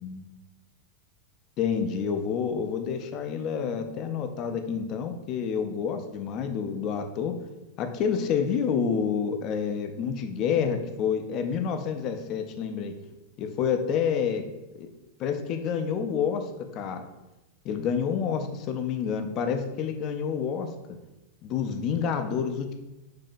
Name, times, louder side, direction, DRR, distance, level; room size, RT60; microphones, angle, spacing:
voice 1, 1.6-7.4 7.8-12.9 13.4-14.4 14.8-14.9 15.2-17.1 17.6-20.7 21.4-22.7, left 7 dB, 35° left, 6 dB, 0.4 m, -28 dB
2.8 x 2.7 x 3.9 m, 1.0 s
figure-of-eight pair, 90°, 0 cm